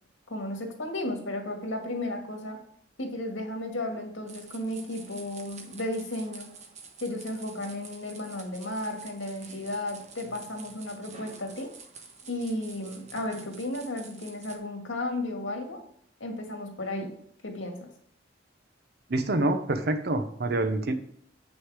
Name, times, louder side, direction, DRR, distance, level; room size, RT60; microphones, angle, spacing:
voice 1, 0.3-2.6 3.0-6.5 7.0-11.7 12.3-15.8 16.2-17.2 17.4-17.9, left 1 dB, 85° left, 3 dB, 1.9 m, -34 dB
sound 1, 4.3-14.6, right 5 dB, 40° right, 1.1 m, -48 dB
voice 2, 19.1-20.9, right 2 dB, 55° right, 9 dB, 0.8 m, -26 dB
7.9 x 6.4 x 4.9 m, 0.64 s
head